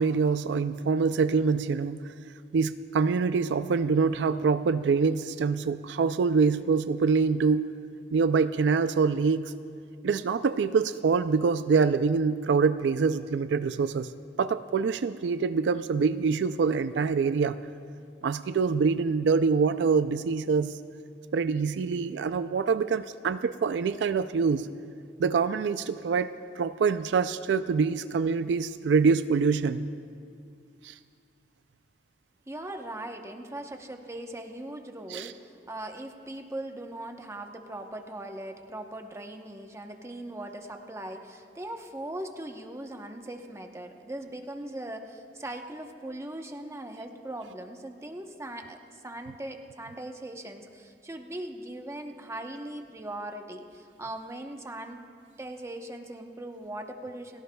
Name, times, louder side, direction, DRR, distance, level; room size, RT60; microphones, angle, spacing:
voice 1, 0.0-2.0 2.5-7.7 8.1-9.4 10.0-14.1 14.4-17.6 18.2-20.7 21.3-24.7 25.2-29.8 30.8-30.9 35.1-35.3, right 5 dB, 75° right, 12 dB, 0.4 m, -25 dB
voice 2, 32.5-55.0 55.4-57.4, right 1 dB, 15° right, 4 dB, 0.9 m, -40 dB
30.0 x 16.5 x 2.3 m, 2.3 s
head